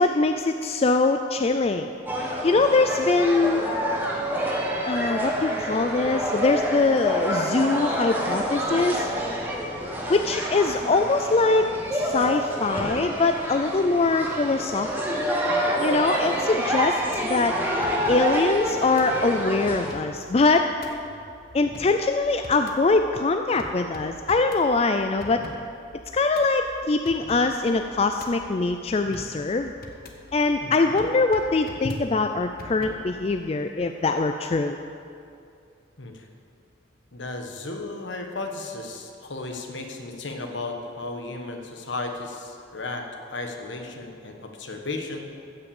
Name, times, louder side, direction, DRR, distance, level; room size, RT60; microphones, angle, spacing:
voice 1, 0.0-1.9 2.4-3.6 4.9-9.1 10.1-15.2 15.8-17.0 17.3-17.5 18.1-20.7 21.5-25.4 26.1-29.7 30.3-34.8, left 3 dB, 30° left, 6 dB, 0.3 m, -23 dB
sound 1, 2.1-19.9, equal, 10° right, 1.4 m, -28 dB
sound 2, 17.1-33.4, left 1 dB, 50° left, 1.1 m, -45 dB
voice 2, 30.6-30.9 31.8-32.0 36.0-36.3 37.1-45.3, left 2 dB, 70° left, 3 dB, 1.4 m, -34 dB
15.5 x 5.9 x 7.2 m, 2.5 s
head